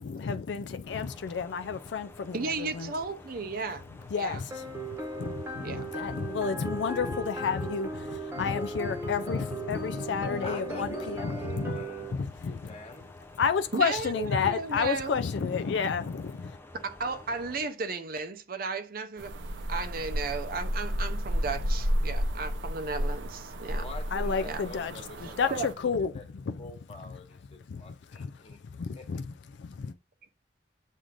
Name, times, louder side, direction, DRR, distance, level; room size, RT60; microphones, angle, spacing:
voice 1, 0.0-2.9 4.1-11.8 12.1-12.7 13.4-16.6 24.1-24.9 25.2-26.6 27.7-28.3 28.7-29.3 29.6-29.9, left 5 dB, 65° left, 0.4 m, -31 dB
sound 1, 0.8-17.7, left 2 dB, 10° left, 0.5 m, -50 dB
voice 2, 2.3-3.8 4.2-4.4 5.6-5.9 13.7-15.2 16.7-19.3 19.7-23.9 24.4-24.6 25.2-25.7, right 4 dB, 50° right, 0.6 m, -34 dB
sound 2, 4.5-12.1, right 2 dB, 15° right, 1.0 m, -37 dB
voice 3, 10.4-12.1 12.4-13.1 23.8-26.2 26.6-28.6 28.9-29.0, left 3 dB, 35° left, 1.3 m, -45 dB
sound 3, 19.2-25.7, equal, 80° right, 0.8 m, -32 dB
7.5 x 2.6 x 5.0 m
head